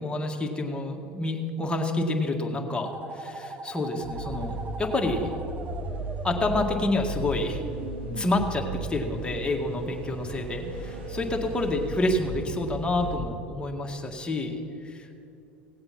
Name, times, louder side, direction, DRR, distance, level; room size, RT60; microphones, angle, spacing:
voice 1, 0.0-5.3 6.2-7.6 8.2-15.1, left 2 dB, 15° left, 2 dB, 1.8 m, -28 dB
Flying Car - Stop Hover, 2.8-8.3, right 3 dB, 25° right, 0.8 m, -40 dB
sound 1, 4.0-13.2, right 1 dB, 85° right, 1.9 m, -36 dB
18.0 x 7.8 x 5.9 m, 2.8 s
hypercardioid pair, 85°, 6 cm